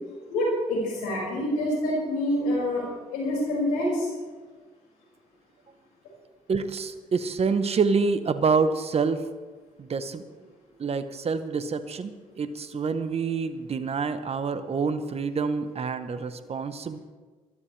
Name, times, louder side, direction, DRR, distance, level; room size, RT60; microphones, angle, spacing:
voice 1, 0.3-2.8 3.1-4.1, left 1 dB, 90° left, -3 dB, 5.7 m, -26 dB
voice 2, 6.5-9.2 9.8-10.2 10.8-17.0, right 5 dB, 40° right, 11 dB, 1.0 m, -27 dB
21.0 x 12.5 x 3.3 m, 1.4 s
supercardioid pair, 55°, 15 cm